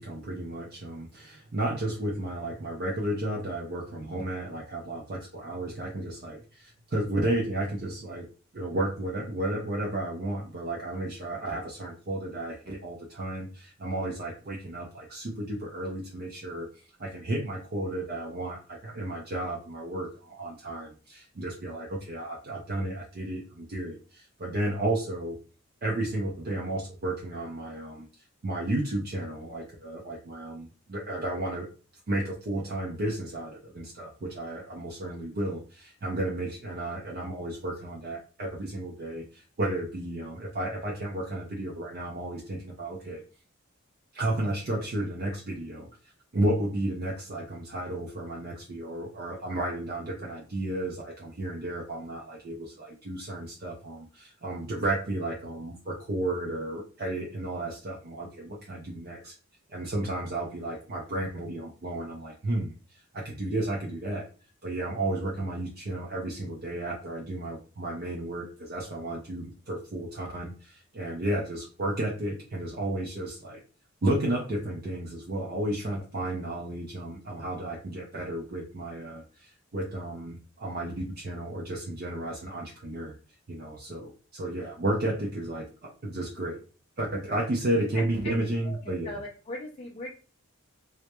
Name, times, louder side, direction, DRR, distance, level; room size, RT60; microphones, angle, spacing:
voice 1, 0.0-8.3 8.5-16.7 17.0-25.4 25.8-28.1 28.4-31.7 32.1-43.2 44.1-45.9 46.3-59.4 59.7-62.7 63.1-64.3 64.6-73.6 74.0-83.2 83.5-86.6 87.0-89.2, right 1 dB, 45° right, -3 dB, 0.4 m, -33 dB
voice 2, 87.9-88.3 88.6-90.1, left 1 dB, 25° left, -2 dB, 0.3 m, -39 dB
2.2 x 2.0 x 2.8 m, 0.36 s
head